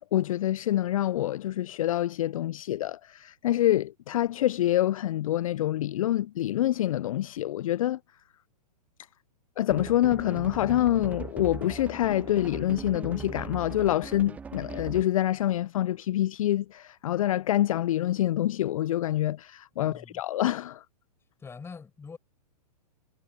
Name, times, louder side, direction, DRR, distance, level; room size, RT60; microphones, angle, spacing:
voice 1, 0.1-8.0 9.6-20.8, left 13 dB, 55° left, 0.4 m, -26 dB
sound 1, 9.7-15.2, right 6 dB, 5° right, 0.4 m, -40 dB
voice 2, 19.8-20.2 21.4-22.2, left 5 dB, 10° left, 5.9 m, -43 dB
hypercardioid pair, 120°, 21 cm